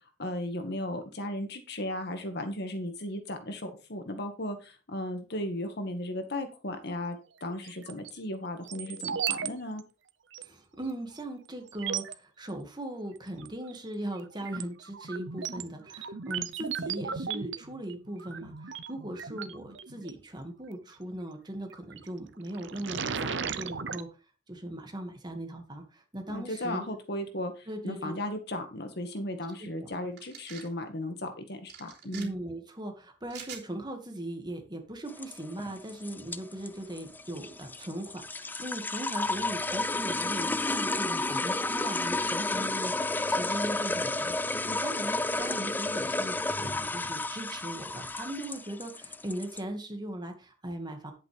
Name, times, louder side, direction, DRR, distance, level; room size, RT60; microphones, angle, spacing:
voice 1, 0.2-9.8 26.3-32.3, left 1 dB, 60° left, 6 dB, 1.8 m, -36 dB
sound 1, 7.6-8.1 8.7-9.5 9.8-9.9 10.3-10.4 11.2-11.3 11.7-12.2 13.4-13.8 14.2-20.1 21.7-22.1 22.5-24.0, right 7 dB, 80° right, 0.8 m, -36 dB
voice 2, 10.4-24.1 24.5-26.9 27.7-28.1 29.6-29.9 32.1-51.1, right 1 dB, 25° right, 4 dB, 2.0 m, -39 dB
sound 2, 30.2-30.7 31.7-32.3 33.3-33.6, right 8 dB, 60° right, 3.4 m, -44 dB
sound 3, 35.1-49.6, left 2 dB, 10° left, 0.4 m, -31 dB
10.5 x 8.6 x 3.5 m, 0.33 s
head